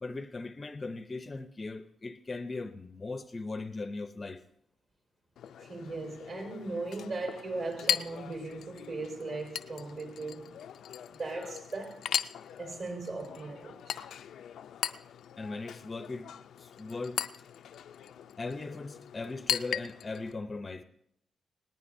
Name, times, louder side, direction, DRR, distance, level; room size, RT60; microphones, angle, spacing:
voice 1, 0.0-4.4 15.4-16.3 16.6-17.2 18.4-20.8, left 3 dB, 25° left, 0.5 m, -38 dB
Chink clink, 5.4-20.3, left 9 dB, 90° left, 0.4 m, -39 dB
voice 2, 5.6-10.5 11.1-12.0 12.6-14.0, right 3 dB, 50° right, 4.3 m, -38 dB
19.5 x 18.5 x 2.6 m
wide cardioid pair, 160°, 0 cm